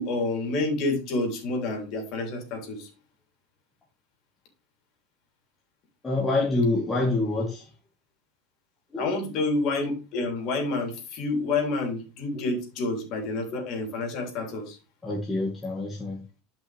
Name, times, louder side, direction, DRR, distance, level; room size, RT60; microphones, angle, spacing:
voice 1, 0.0-2.9 9.0-14.8, left 2 dB, 40° left, 3 dB, 3.3 m, -28 dB
voice 2, 6.0-7.7 8.9-9.1 15.0-16.2, left 2 dB, 10° left, -3 dB, 1.6 m, -26 dB
11.0 x 5.8 x 3.4 m, 0.31 s
supercardioid pair, 170°, 0 cm